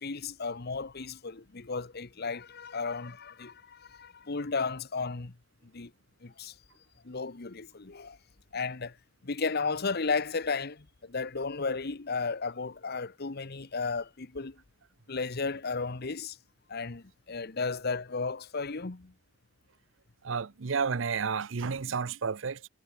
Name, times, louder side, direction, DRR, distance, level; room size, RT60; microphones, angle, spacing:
voice 1, 0.0-5.3 5.7-5.9 6.2-6.5 7.0-8.2 8.5-9.0 9.2-14.6 15.1-16.4 16.7-19.1, left 4 dB, 55° left, 1.1 m, -34 dB
voice 2, 20.2-22.7, right 5 dB, 75° right, 0.7 m, -31 dB
head